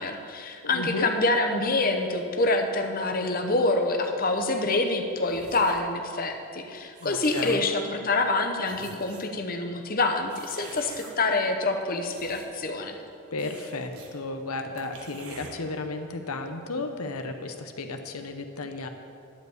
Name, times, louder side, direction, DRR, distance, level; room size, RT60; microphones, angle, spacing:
voice 1, 0.0-12.9, left 2 dB, 40° left, 4 dB, 0.9 m, -26 dB
voice 2, 0.6-1.1 7.0-7.7 13.3-18.9, left 2 dB, 80° left, 6 dB, 0.9 m, -34 dB
sound 1, 5.2-5.9 6.6-7.7 8.3-8.4 8.6-9.4 10.3-11.1 11.8-12.7 13.0-13.1 13.4-14.1 14.4-14.5 14.8-15.5, right 3 dB, 80° right, 1.5 m, -46 dB
11.5 x 5.2 x 8.0 m, 2.5 s
head